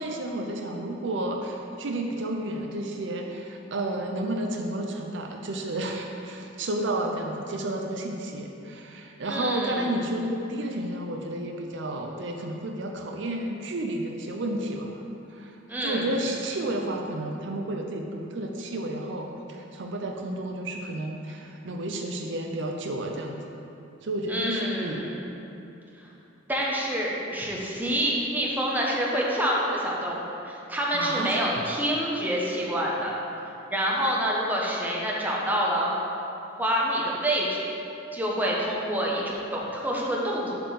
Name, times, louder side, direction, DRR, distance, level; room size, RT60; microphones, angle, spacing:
voice 1, 0.0-15.0 15.3-15.5 15.8-23.4 24.0-25.1 30.9-31.6, right 1 dB, 65° right, 2 dB, 0.6 m, -31 dB
voice 2, 9.2-9.9 15.7-16.1 24.3-25.2 26.5-30.2 30.4-33.2 33.7-35.9 36.6-37.7 38.1-40.5, equal, 10° right, -4 dB, 1.1 m, -27 dB
7.5 x 4.5 x 7.0 m, 2.8 s
head